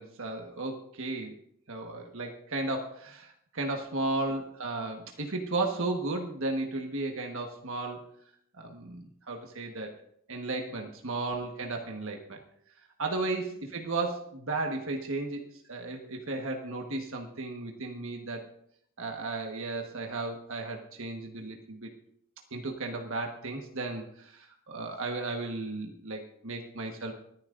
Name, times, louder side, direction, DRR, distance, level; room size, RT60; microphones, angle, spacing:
voice 1, 0.0-1.3 1.7-8.0 8.5-9.9 10.3-12.4 13.0-18.4 19.0-21.9 22.5-27.1, right 2 dB, 65° right, 2 dB, 1.4 m, -34 dB
26.5 x 10.5 x 2.6 m, 0.69 s
head